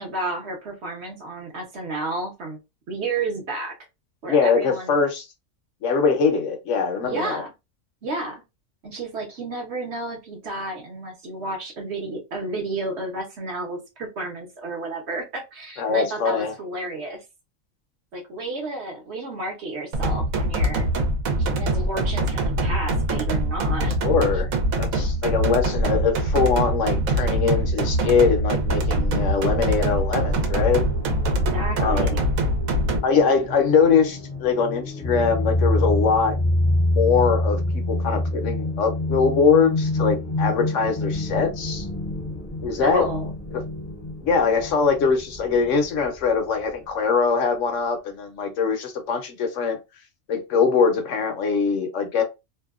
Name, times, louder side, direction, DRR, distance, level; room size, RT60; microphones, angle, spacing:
voice 1, 0.0-2.6 2.9-3.8 4.2-5.0 7.0-7.5 8.0-8.4 8.8-17.2 18.1-20.9 21.4-24.0 31.3-32.2 42.8-43.3, right 2 dB, 60° right, 1.0 m, -31 dB
voice 2, 4.3-5.2 5.8-7.4 15.8-16.5 21.7-21.8 24.0-24.5 24.8-30.8 31.8-32.2 33.0-36.4 36.9-37.6 37.9-41.9 42.6-43.1 44.2-49.8 50.3-52.2, left 5 dB, 70° left, 0.9 m, -22 dB
sound 1, 19.9-33.0, right 1 dB, 85° right, 1.1 m, -23 dB
sound 2, 29.1-46.3, left 1 dB, 35° left, 0.6 m, -28 dB
2.7 x 2.2 x 2.3 m
omnidirectional pair, 1.4 m